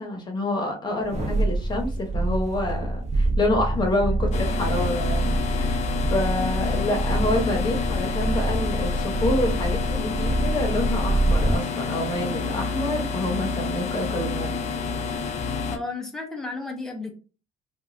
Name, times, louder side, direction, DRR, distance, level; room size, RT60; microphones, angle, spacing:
voice 1, 0.0-5.8 6.1-14.8, left 1 dB, 25° left, 2 dB, 1.0 m, -28 dB
sound 1, 1.0-11.7 12.1-12.2, right 1 dB, 40° right, 1.0 m, -26 dB
sound 2, 4.3-15.8, left 5 dB, 40° left, 0.5 m, -29 dB
voice 2, 15.7-17.1, left 3 dB, 5° left, 1 dB, 0.7 m, -33 dB
3.0 x 2.4 x 2.5 m, 0.35 s
cardioid pair, 110°, 17 cm